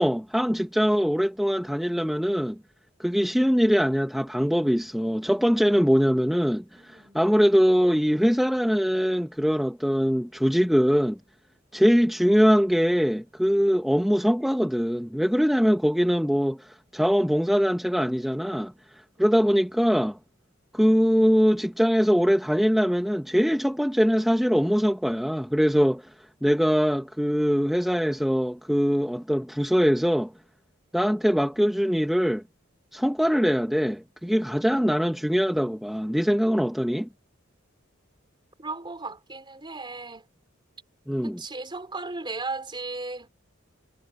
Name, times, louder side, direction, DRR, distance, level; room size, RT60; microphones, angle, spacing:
voice 1, 0.0-2.6 3.0-11.2 11.7-18.7 19.2-20.2 20.7-26.1 26.4-30.3 30.9-32.4 32.9-37.1 41.1-41.4, equal, ahead, 0.9 m, -22 dB
voice 2, 6.8-7.2 38.6-40.3 41.2-43.3, right 3 dB, 25° right, 3.9 m, -36 dB
head